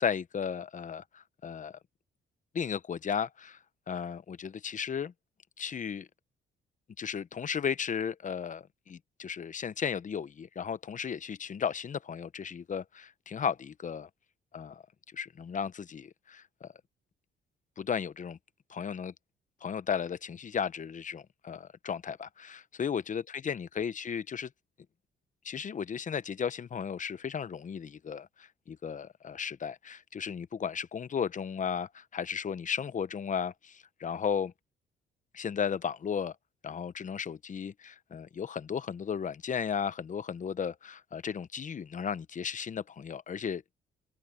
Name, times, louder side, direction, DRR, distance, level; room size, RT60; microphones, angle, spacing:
voice 1, 0.0-1.8 2.5-3.6 3.9-5.1 5.6-6.1 7.0-14.1 14.5-14.8 15.1-16.7 17.8-18.4 18.7-19.1 19.6-24.5 25.4-34.5 35.3-36.3 36.6-43.6, left 7 dB, 40° left, 0.8 m, -35 dB
cardioid pair, 90°, 20 cm